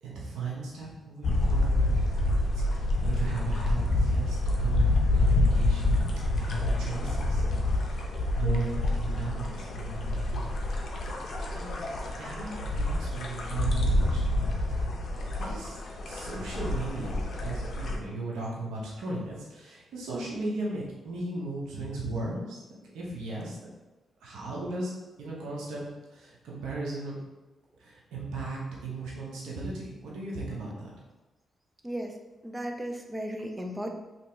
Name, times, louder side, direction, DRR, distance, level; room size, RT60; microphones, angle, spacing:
voice 1, 0.0-1.9 2.7-4.9 5.1-5.9 6.4-8.0 8.4-10.5 11.5-11.9 12.2-14.5 15.4-22.6 22.9-23.5 24.2-24.9 25.2-27.2 27.8-30.9, right 2 dB, 85° right, -4 dB, 0.8 m, -36 dB
sound 1, 1.2-17.9, left 1 dB, 65° left, 0.6 m, -27 dB
voice 2, 32.4-33.9, equal, 15° right, 3 dB, 0.5 m, -35 dB
2.9 x 2.7 x 3.3 m, 1.1 s
supercardioid pair, 60°, 0 cm